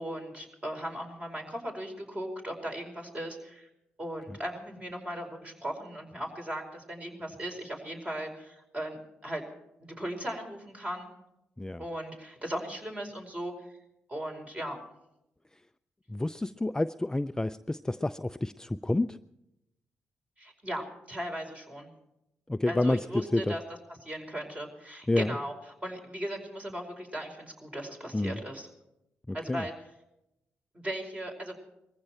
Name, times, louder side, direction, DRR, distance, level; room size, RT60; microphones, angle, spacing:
voice 1, 0.0-3.7 4.0-9.4 9.8-11.1 11.8-13.5 14.1-14.8 20.4-21.9 22.7-23.6 23.9-25.5 25.8-28.7 29.3-29.7 30.7-31.6, equal, 25° right, 2 dB, 5.0 m, -37 dB
voice 2, 16.1-19.2 22.5-23.5 25.1-25.3 28.1-28.4 29.3-29.7, left 2 dB, 10° left, 12 dB, 0.5 m, -29 dB
20.5 x 15.0 x 4.4 m, 0.86 s
hypercardioid pair, 45°, 5 cm